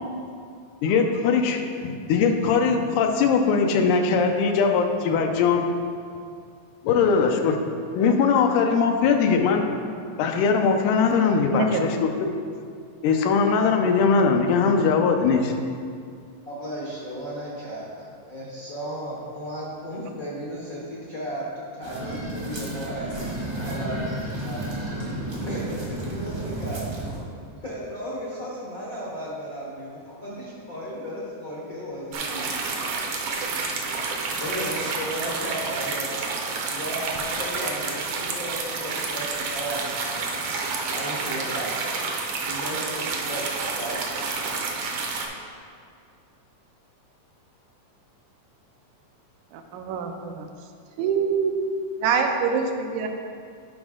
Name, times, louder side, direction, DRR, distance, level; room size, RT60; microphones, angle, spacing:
voice 1, 0.8-5.7 6.8-7.6 7.9-9.6 10.2-12.3 13.0-15.5, left 5 dB, 90° left, 4 dB, 2.2 m, -21 dB
voice 2, 16.4-24.7 25.4-26.9 27.6-33.2 34.4-36.3 36.7-40.2 40.9-41.7 42.4-43.4 43.7-44.5, right 1 dB, 70° left, -5 dB, 0.8 m, -35 dB
sound 1, 21.8-27.2, right 1 dB, 40° right, 0.7 m, -32 dB
sound 2, 32.1-45.3, right 4 dB, 70° right, 1.5 m, -29 dB
voice 3, 49.5-50.5 51.0-51.7 52.0-53.1, right 5 dB, 85° right, 4 dB, 2.1 m, -24 dB
11.0 x 5.0 x 3.7 m, 2.3 s
omnidirectional pair, 3.5 m